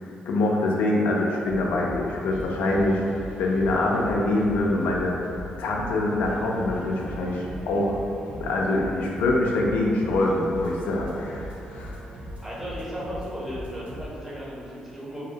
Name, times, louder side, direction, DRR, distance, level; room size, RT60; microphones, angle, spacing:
voice 1, 0.0-3.0 3.4-5.1 5.6-8.0 8.3-11.9, left 2 dB, 85° left, -2 dB, 0.3 m, -24 dB
sound 1, 1.5-14.1, equal, 60° right, 0.7 m, -39 dB
voice 2, 12.4-15.2, equal, 10° right, -7 dB, 0.6 m, -35 dB
2.5 x 2.0 x 2.7 m, 2.5 s
cardioid pair, 100°, 3 cm